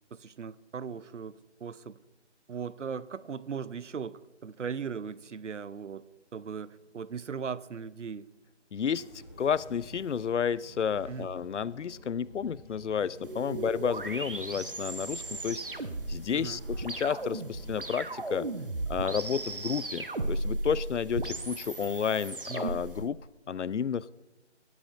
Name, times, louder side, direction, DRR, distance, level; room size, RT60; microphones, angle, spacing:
voice 1, 0.1-2.0 2.5-6.1 6.3-8.3 11.1-11.3 13.5-13.7 16.3-16.6 22.5-22.7, right 6 dB, 75° right, 18 dB, 0.6 m, -38 dB
sound 1, 6.4-20.4, left 4 dB, 40° left, 2.4 m, -59 dB
voice 2, 8.7-15.8 16.1-18.5 18.9-23.2 23.5-24.1, left 7 dB, 75° left, 20 dB, 0.5 m, -31 dB
sound 2, 8.9-16.9, equal, 10° right, 1.5 m, -50 dB
sound 3, 13.2-23.0, right 2 dB, 45° right, 0.8 m, -36 dB
19.5 x 10.5 x 2.5 m, 1.1 s
figure-of-eight pair, 180°, 36 cm